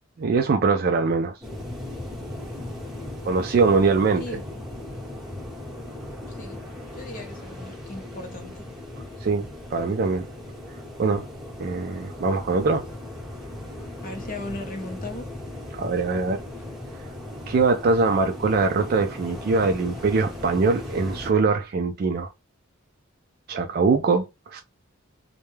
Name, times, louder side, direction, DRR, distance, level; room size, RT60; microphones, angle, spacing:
voice 1, 0.2-1.4 3.2-4.2 9.2-10.3 11.0-11.3 11.6-12.8 15.7-16.4 17.5-22.3 23.5-24.6, right 4 dB, 45° right, 0.3 m, -22 dB
sound 1, 1.4-21.3, left 1 dB, ahead, 1.0 m, -37 dB
voice 2, 6.3-6.6 6.9-8.6 14.0-15.3, left 2 dB, 40° left, 0.7 m, -37 dB
2.2 x 2.1 x 3.0 m
head